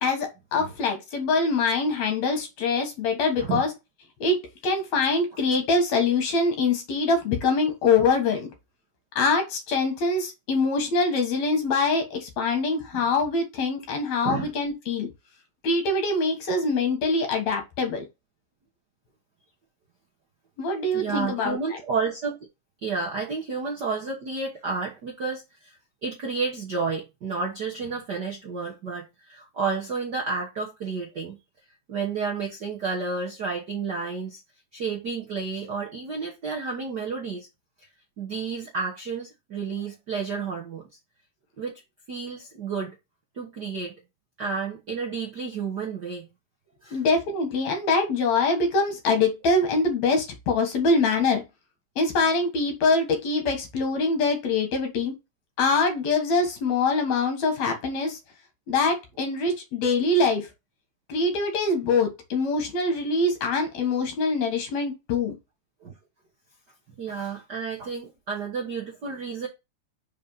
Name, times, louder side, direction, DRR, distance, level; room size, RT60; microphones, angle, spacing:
voice 1, 0.0-3.7 4.2-8.5 9.2-15.1 15.6-18.1 20.6-21.8 46.9-51.4 52.0-55.1 55.6-58.2 58.7-60.5 61.1-65.4, left 3 dB, 60° left, 2.6 m, -24 dB
voice 2, 20.9-22.4 22.8-31.4 31.9-34.4 34.7-37.5 38.2-40.9 41.6-41.7 42.1-43.0 43.3-44.0 44.4-46.3 46.8-47.0 65.8-65.9 67.0-69.5, right 5 dB, 55° right, 1.2 m, -31 dB
5.3 x 4.2 x 5.6 m
omnidirectional pair, 3.7 m